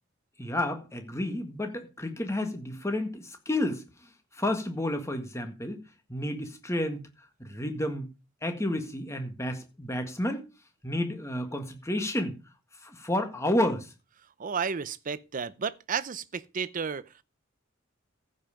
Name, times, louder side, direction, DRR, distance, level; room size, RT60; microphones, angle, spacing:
voice 1, 0.4-3.8 4.4-5.8 6.1-7.0 7.4-8.1 8.4-10.4 10.8-12.4 12.8-13.9, left 1 dB, 15° left, 1.7 m, -30 dB
voice 2, 14.4-17.2, right 6 dB, 40° right, 0.6 m, -32 dB
15.0 x 5.5 x 5.0 m
head